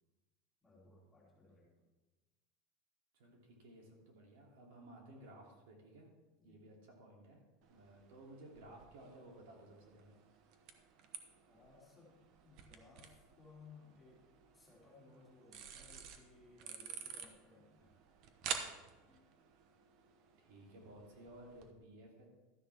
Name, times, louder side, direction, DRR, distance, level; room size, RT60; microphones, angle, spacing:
voice 1, 0.6-1.8 6.4-6.6 11.5-14.3 14.5-17.9 19.0-19.3, left 4 dB, 10° left, -5 dB, 2.9 m, -62 dB
voice 2, 3.1-6.1 6.4-7.4 7.7-10.1 20.4-22.3, right 1 dB, 65° right, -1 dB, 2.9 m, -57 dB
sound 1, 7.6-21.7, right 7 dB, 40° right, 1.0 m, -51 dB
12.5 x 10.5 x 3.5 m, 1.2 s
supercardioid pair, 165°, 0 cm